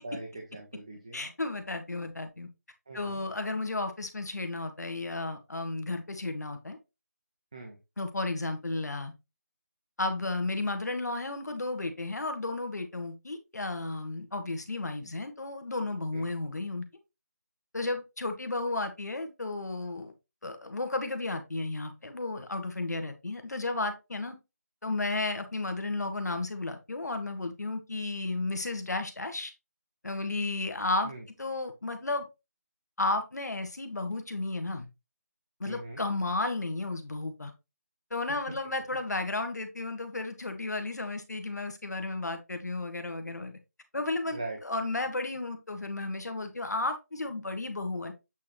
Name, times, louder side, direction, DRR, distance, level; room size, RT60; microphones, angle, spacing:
voice 1, 0.0-1.3 2.9-3.2 7.5-7.8 16.1-16.3 31.0-31.3 35.6-36.0 44.3-44.6, right 2 dB, 20° right, 0.7 m, -41 dB
voice 2, 1.1-2.5 2.9-6.8 8.0-9.1 10.0-16.8 17.7-20.1 20.4-24.3 24.8-29.5 30.0-31.1 31.4-32.3 33.0-34.9 35.6-37.5 38.1-43.5 43.9-48.1, left 2 dB, 75° left, 1.6 m, -33 dB
8.4 x 3.8 x 3.2 m
figure-of-eight pair, 180°, 9 cm